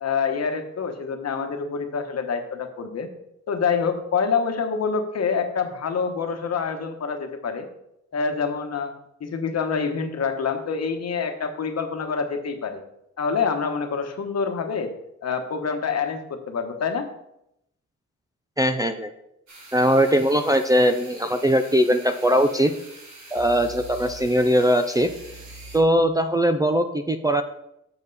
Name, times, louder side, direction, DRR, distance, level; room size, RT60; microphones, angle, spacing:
voice 1, 0.0-3.1 3.5-7.7 8.1-8.9 9.2-12.8 13.2-14.9 15.2-17.1, left 5 dB, 55° left, 6 dB, 1.1 m, -26 dB
voice 2, 18.6-19.1 19.7-22.7 23.3-25.1 25.7-27.4, equal, 10° right, 5 dB, 0.4 m, -20 dB
sound 1, 19.5-25.8, right 1 dB, 65° right, 2.9 m, -44 dB
7.6 x 6.9 x 4.0 m, 0.81 s
cardioid pair, 105°, 31 cm